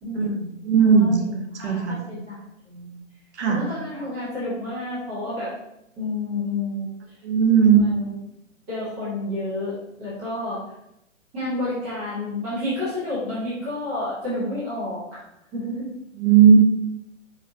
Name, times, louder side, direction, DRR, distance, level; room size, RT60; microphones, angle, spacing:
voice 1, 0.0-3.0 3.5-5.5 6.0-6.9 7.6-8.2 8.7-10.6 11.3-15.2 15.5-15.9, left 2 dB, 5° right, -10 dB, 0.4 m, -30 dB
voice 2, 0.7-1.2 1.6-2.0 3.4-3.6 7.2-7.8 16.2-16.6, right 6 dB, 55° right, 2 dB, 0.9 m, -16 dB
4.7 x 3.4 x 2.5 m, 0.81 s
hypercardioid pair, 140°, 40 cm